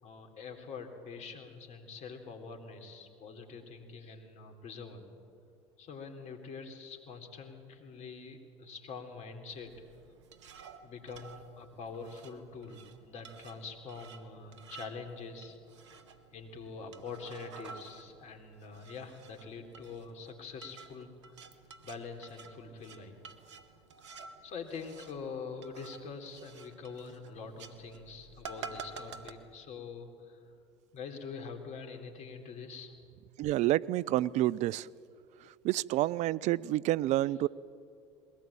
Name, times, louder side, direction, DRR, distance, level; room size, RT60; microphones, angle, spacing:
voice 1, 0.0-5.1 5.8-9.7 10.8-15.6 16.3-21.4 21.8-23.2 24.0-30.4 30.9-32.9, left 4 dB, 50° left, 5 dB, 3.5 m, -45 dB
sound 1, 9.5-29.3, right 5 dB, 85° right, 1.3 m, -51 dB
voice 2, 33.4-34.9 35.6-37.5, right 15 dB, 55° right, 22 dB, 0.4 m, -28 dB
22.0 x 18.0 x 8.7 m, 2.4 s
hypercardioid pair, 75°, 15 cm